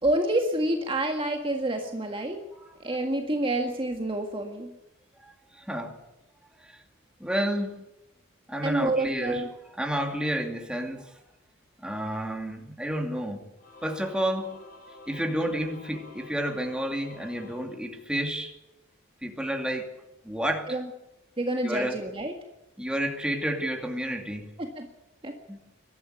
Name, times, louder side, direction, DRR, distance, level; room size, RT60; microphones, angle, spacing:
voice 1, 0.0-2.4 2.8-4.7 8.6-9.5 20.7-20.9 21.4-22.3 24.6-24.9 25.2-25.4, right 1 dB, 25° right, 3 dB, 1.8 m, -28 dB
voice 2, 2.6-3.0 5.2-6.0 6.6-6.8 7.2-7.9 8.5-9.4 9.8-11.1 11.8-13.5 13.8-14.6 15.1-18.5 19.2-19.9 20.2-20.8 21.6-22.0 22.8-24.5 25.5-25.7, right 1 dB, 5° right, 3 dB, 2.5 m, -30 dB
Singing / Musical instrument, 13.6-18.4, left 2 dB, 50° left, 4.0 m, -50 dB
22.5 x 13.0 x 9.2 m, 0.93 s
head